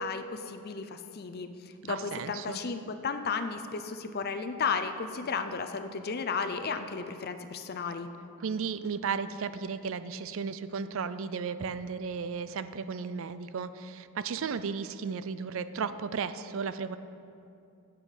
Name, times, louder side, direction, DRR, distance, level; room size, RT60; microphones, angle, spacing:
voice 1, 0.0-8.1, left 5 dB, 45° left, 8 dB, 0.6 m, -34 dB
voice 2, 1.9-2.6 8.4-17.0, right 5 dB, 60° right, 13 dB, 0.4 m, -34 dB
13.0 x 8.4 x 4.9 m, 2.6 s
head